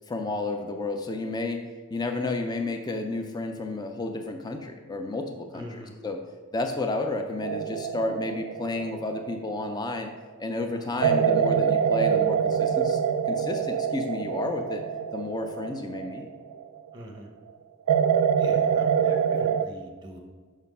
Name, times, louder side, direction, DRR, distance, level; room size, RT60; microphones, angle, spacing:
voice 1, 0.1-1.6 1.9-6.2 6.5-10.1 10.4-13.0 13.3-14.8 15.1-16.3, left 2 dB, 20° left, 5 dB, 0.4 m, -31 dB
voice 2, 5.5-5.9 10.7-11.0 16.9-17.3 18.4-20.2, equal, 20° right, 2 dB, 1.0 m, -42 dB
sound 1, 7.4-10.1 11.0-16.8 17.9-19.6, right 7 dB, 90° right, 0.4 m, -25 dB
5.9 x 4.3 x 5.4 m, 1.5 s
head